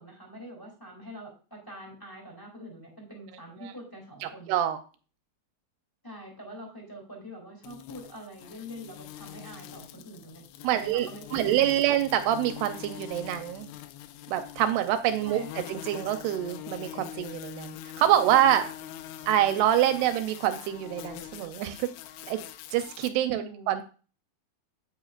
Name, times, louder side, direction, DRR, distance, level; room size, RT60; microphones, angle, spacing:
voice 1, 0.0-4.6 6.0-10.4 10.8-12.0 15.2-15.7 20.0-20.1 23.3-23.7, equal, 5° left, -1 dB, 1.7 m, -44 dB
voice 2, 4.2-4.8 10.6-13.7 14.3-15.4 15.7-18.7 19.3-21.9 22.3-22.4 22.7-23.8, right 11 dB, 80° right, 9 dB, 2.5 m, -26 dB
sound 1, 7.6-23.1, left 12 dB, 80° left, 2.4 m, -43 dB
9.6 x 9.4 x 2.5 m, 0.37 s
omnidirectional pair, 5.3 m